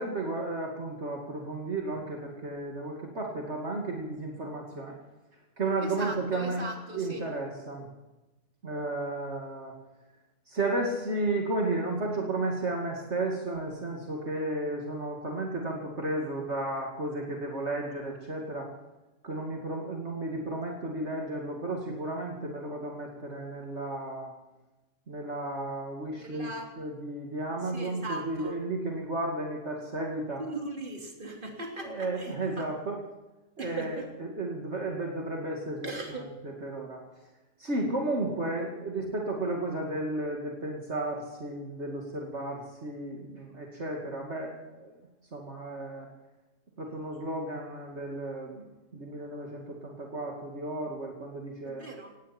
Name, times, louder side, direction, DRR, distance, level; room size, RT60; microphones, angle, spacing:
voice 1, 0.0-5.0 5.6-6.7 6.9-7.9 8.6-9.7 10.5-18.7 19.2-24.3 25.1-26.5 26.8-30.4 31.8-33.0 33.6-33.9 34.2-35.9 36.6-37.0 37.6-44.9 45.3-46.1 46.8-51.9, right 2 dB, 60° right, 0 dB, 2.8 m, -33 dB
voice 2, 5.8-7.3 26.2-26.8 27.6-28.6 30.4-32.7 33.6-34.1 35.8-36.3 51.6-52.1, right 2 dB, 40° right, 1 dB, 3.4 m, -39 dB
18.5 x 17.5 x 4.4 m, 1.0 s
omnidirectional pair, 1.3 m